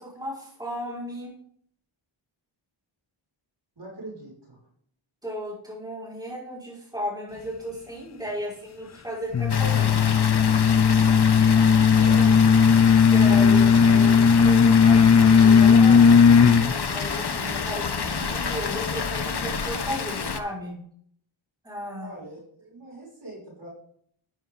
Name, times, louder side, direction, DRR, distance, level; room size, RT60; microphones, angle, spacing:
voice 1, 0.0-1.4 5.2-10.4 13.1-20.8 21.6-22.1, equal, 10° right, -6 dB, 5.6 m, -35 dB
voice 2, 3.8-4.6 12.0-12.4 22.0-23.7, right 1 dB, 55° right, -4 dB, 6.0 m, -41 dB
sound 1, 9.3-16.7, left 6 dB, 35° left, 0.5 m, -16 dB
Water, 9.5-20.4, left 5 dB, 50° left, 1.0 m, -29 dB
12.5 x 9.8 x 3.9 m, 0.64 s
wide cardioid pair, 80°, 50 cm